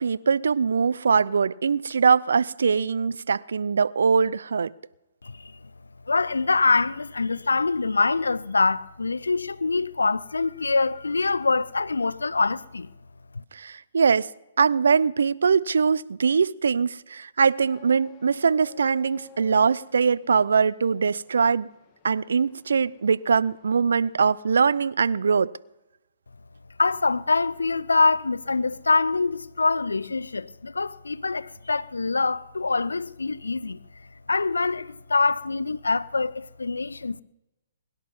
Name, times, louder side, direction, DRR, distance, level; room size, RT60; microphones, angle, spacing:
voice 1, 0.0-4.7 13.5-14.3 14.6-21.7 22.0-25.5, right 5 dB, 75° right, 0.5 m, -22 dB
voice 2, 6.1-12.9 13.3-13.4 26.8-33.8 34.3-37.2, left 3 dB, 90° left, 0.6 m, -24 dB
sound 1, 17.7-25.0, left 6 dB, 30° left, 1.9 m, -53 dB
22.0 x 11.0 x 5.5 m
hypercardioid pair, 135°, 0 cm